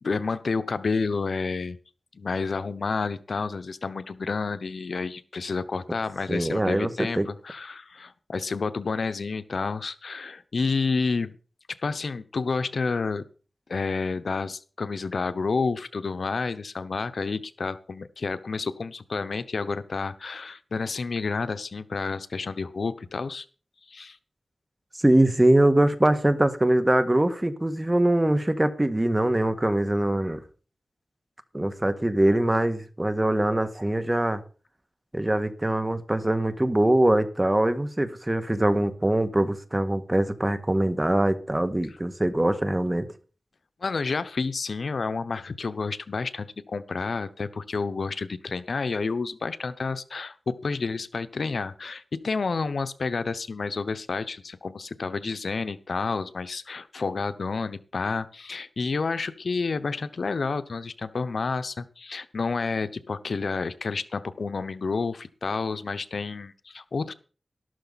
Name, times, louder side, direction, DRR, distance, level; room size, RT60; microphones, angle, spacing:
voice 1, 0.0-1.8 2.1-11.4 11.7-13.3 13.7-23.4 23.9-24.2 43.8-67.1, left 4 dB, 80° left, 13 dB, 0.8 m, -30 dB
voice 2, 6.3-6.9 7.2-7.3 25.0-30.4 31.5-34.4 35.1-43.1, right 1 dB, 20° right, 10 dB, 1.6 m, -23 dB
12.5 x 12.5 x 4.1 m, 0.38 s
wide cardioid pair, 55°, 0 cm